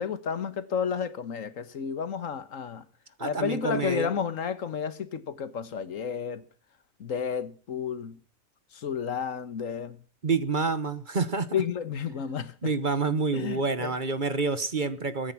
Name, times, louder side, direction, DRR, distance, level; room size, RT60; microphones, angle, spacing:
voice 1, 0.0-2.8 3.2-6.4 7.0-8.2 8.7-10.0 11.5-12.7 13.3-13.9, left 7 dB, 75° left, 1.6 m, -31 dB
voice 2, 3.2-4.1 10.2-11.6 12.6-15.3, right 4 dB, 40° right, 1.2 m, -28 dB
21.5 x 9.9 x 5.8 m
omnidirectional pair, 1.4 m